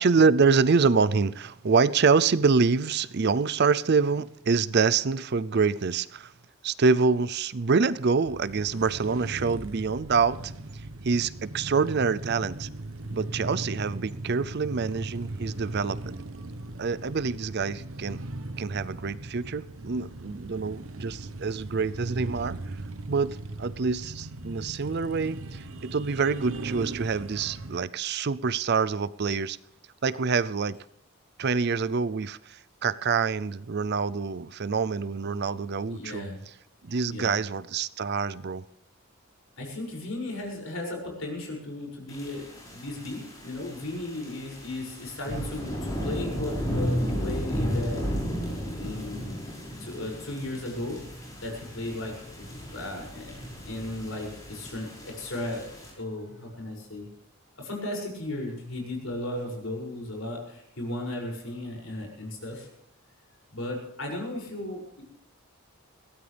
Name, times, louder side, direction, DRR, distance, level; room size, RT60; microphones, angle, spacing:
voice 1, 0.0-6.3 6.6-10.4 11.0-12.7 13.1-16.2 16.8-18.2 18.6-22.6 23.1-29.6 30.0-30.8 31.4-32.4 32.8-36.2 36.8-38.6, right 5 dB, 50° right, 0.5 m, -26 dB
sound 1, 8.2-27.8, right 2 dB, 70° right, 1.1 m, -38 dB
voice 2, 35.9-36.4 37.1-37.4 39.6-48.1 48.8-49.4 49.8-51.0 51.4-52.5 52.7-53.3 53.7-55.6 56.0-57.1 57.6-62.7 63.5-65.0, left 1 dB, 65° left, 6.6 m, -35 dB
sound 2, 42.1-55.9, equal, 15° left, 5.7 m, -34 dB
22.0 x 16.5 x 3.4 m
head